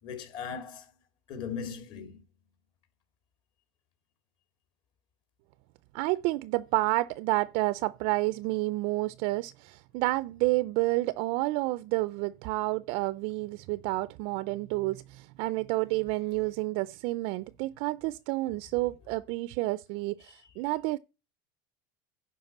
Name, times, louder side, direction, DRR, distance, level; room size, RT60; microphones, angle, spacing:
voice 1, 0.0-0.9 1.3-2.2 20.4-20.5, left 6 dB, 45° left, 3.1 m, -39 dB
voice 2, 5.9-21.0, right 20 dB, 55° right, 0.4 m, -30 dB
11.0 x 4.7 x 7.1 m
supercardioid pair, 150°, 12 cm